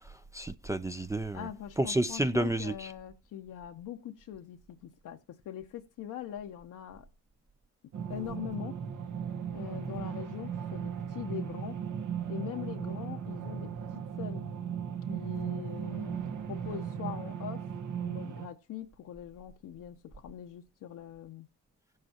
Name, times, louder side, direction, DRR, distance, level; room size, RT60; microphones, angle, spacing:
voice 1, 0.3-1.5 1.8-2.9, right 1 dB, 10° right, 0.5 m, -30 dB
voice 2, 1.3-7.1 8.1-8.8 9.5-11.8 12.3-13.7 14.2-14.5 15.1-16.2 16.5-17.7 18.0-21.5, left 10 dB, 70° left, 0.9 m, -42 dB
sound 1, 7.9-18.5, right 8 dB, 65° right, 1.3 m, -37 dB
16.0 x 7.6 x 2.9 m
cardioid pair, 95°, 33 cm